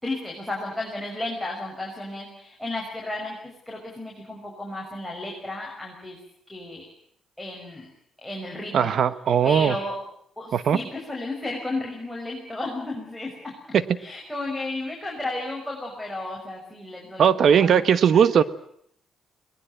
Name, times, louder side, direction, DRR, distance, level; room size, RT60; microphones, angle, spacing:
voice 1, 0.0-6.2 6.5-6.9 7.4-7.9 8.2-9.0 9.4-10.0 10.4-17.8 18.1-18.4, left 2 dB, 5° left, -2 dB, 6.1 m, -33 dB
voice 2, 8.7-9.8 10.5-10.8 17.2-18.4, right 8 dB, 60° right, 15 dB, 1.2 m, -18 dB
22.0 x 20.0 x 9.1 m, 0.67 s
cardioid pair, 90°, 0 cm